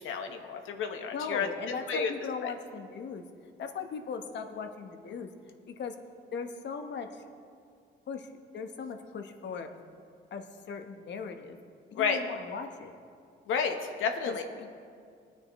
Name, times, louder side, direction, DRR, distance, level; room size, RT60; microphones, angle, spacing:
voice 1, 0.0-1.5 1.9-2.1 2.4-2.5 11.9-12.2 13.5-14.4, left 6 dB, 80° left, 5 dB, 1.2 m, -31 dB
voice 2, 1.1-3.2 3.6-5.3 5.7-5.9 6.3-7.2 8.1-8.3 8.5-9.7 10.3-11.6 11.9-12.9 14.3-14.7, left 5 dB, 60° left, 6 dB, 1.1 m, -38 dB
19.5 x 9.4 x 3.1 m, 2.3 s
cardioid pair, 90°, 20 cm